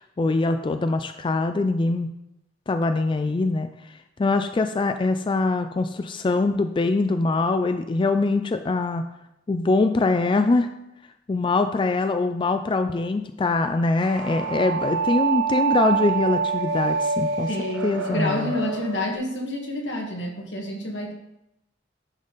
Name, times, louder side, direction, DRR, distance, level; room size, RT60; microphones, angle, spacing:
voice 1, 0.0-2.1 2.7-9.0 9.5-10.7 11.3-17.5 17.8-18.5, left 3 dB, 25° left, 8 dB, 0.3 m, -23 dB
sound 1, 14.0-19.1, right 5 dB, 80° right, 1.3 m, -26 dB
voice 2, 17.5-21.1, left 1 dB, 80° left, 0 dB, 1.8 m, -29 dB
10.0 x 5.4 x 4.0 m, 0.86 s
head